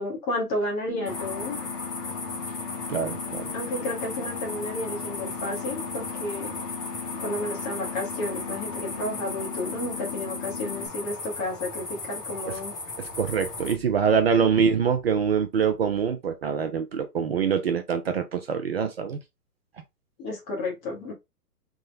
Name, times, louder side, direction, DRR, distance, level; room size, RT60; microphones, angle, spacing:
voice 1, 0.0-1.6 3.5-6.5 7.2-12.7 20.2-21.1, left 1 dB, 15° left, 0.7 m, -32 dB
sound 1, 0.9-10.9, left 6 dB, 55° left, 1.0 m, -38 dB
sound 2, 1.1-13.7, left 3 dB, 75° left, 1.8 m, -36 dB
voice 2, 2.9-3.5 12.5-12.6 13.0-19.2, right 6 dB, 40° right, 0.5 m, -24 dB
3.6 x 2.1 x 3.8 m
hypercardioid pair, 135°, 47 cm